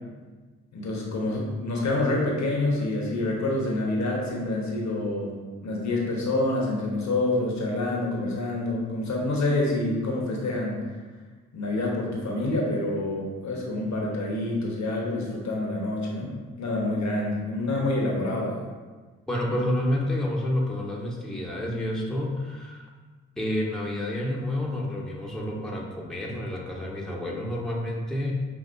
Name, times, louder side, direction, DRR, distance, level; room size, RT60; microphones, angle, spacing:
voice 1, 0.7-5.3 5.6-10.8 11.5-16.3 16.6-18.6, left 2 dB, 55° left, -2 dB, 1.2 m, -27 dB
voice 2, 19.3-22.9 23.4-28.4, left 1 dB, ahead, -3 dB, 1.0 m, -29 dB
5.8 x 2.9 x 2.6 m, 1.4 s
supercardioid pair, 45°, 33 cm